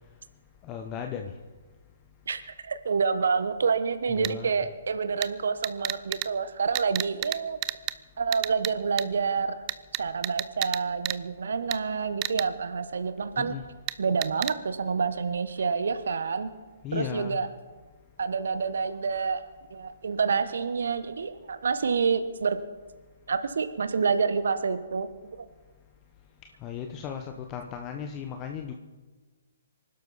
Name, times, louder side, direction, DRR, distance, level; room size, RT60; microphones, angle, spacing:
voice 1, 0.6-1.3 4.1-4.5 13.4-13.6 16.8-17.4 26.6-28.7, left 8 dB, 25° left, 5 dB, 1.0 m, -36 dB
voice 2, 2.3-7.6 8.2-9.6 10.0-13.5 14.0-16.5 16.9-17.5 18.2-19.4 19.7-22.6 23.3-25.1 25.4-25.5, right 5 dB, 70° right, 11 dB, 1.1 m, -28 dB
sound 1, 4.2-4.3 5.2-5.3 5.6-6.3 6.8-7.4 7.6-7.9 8.3-8.7 9.0-9.1 9.7-10.8 11.1-11.2 11.7-11.8 12.2-12.4 13.9-14.0 14.2-14.5, right 19 dB, 30° right, 0.5 m, -29 dB
26.0 x 12.0 x 4.2 m, 1.3 s
figure-of-eight pair, 130°, 0 cm